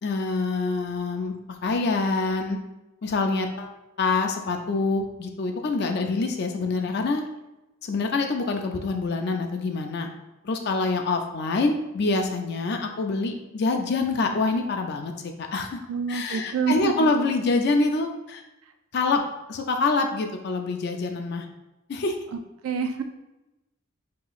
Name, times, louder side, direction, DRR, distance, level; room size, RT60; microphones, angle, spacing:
voice 1, 0.0-1.4 1.6-2.6 3.0-7.3 7.8-10.1 10.4-15.8 16.1-18.4 18.9-19.2 19.5-21.5 21.9-22.2, left 3 dB, 50° left, 4 dB, 0.4 m, -26 dB
voice 2, 15.9-17.1 22.3-23.0, right 5 dB, 75° right, 7 dB, 0.3 m, -27 dB
5.5 x 2.9 x 2.4 m, 0.97 s
head